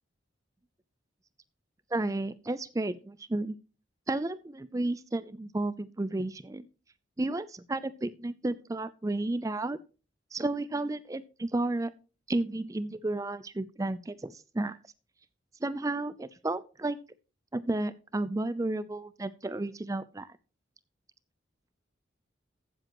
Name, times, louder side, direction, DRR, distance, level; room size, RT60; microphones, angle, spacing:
voice 1, 1.9-3.6 4.1-6.7 7.2-9.8 10.3-11.9 12.3-14.8 15.6-17.0 17.5-20.3, right 2 dB, 15° right, 16 dB, 0.4 m, -32 dB
15.0 x 7.7 x 3.0 m, 0.33 s
head